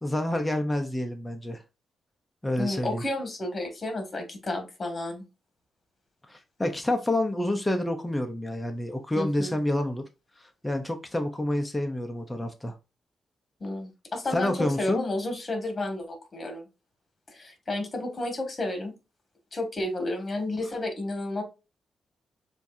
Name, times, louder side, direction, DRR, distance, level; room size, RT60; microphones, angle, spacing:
voice 1, 0.0-1.6 2.4-3.0 6.3-10.0 10.6-12.7 14.3-15.0, left 1 dB, 10° left, 4 dB, 0.8 m, -28 dB
voice 2, 2.6-5.2 9.1-9.6 13.6-16.6 17.3-18.9 19.5-21.4, left 2 dB, 35° left, 4 dB, 2.0 m, -31 dB
7.0 x 2.7 x 2.6 m, 0.28 s
cardioid pair, 80°, 0 cm